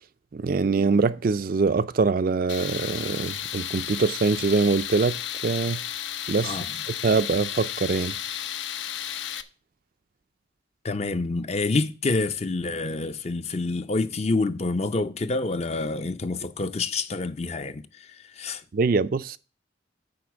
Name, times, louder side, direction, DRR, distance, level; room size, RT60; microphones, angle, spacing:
voice 1, 0.3-5.8 6.3-6.6 7.0-8.2 18.7-19.4, right 4 dB, 45° right, 0.4 m, -23 dB
Tools, 2.5-9.4, left 10 dB, 75° left, 0.6 m, -33 dB
voice 2, 10.8-18.6, left 3 dB, 35° left, 0.5 m, -27 dB
9.5 x 4.2 x 7.1 m
head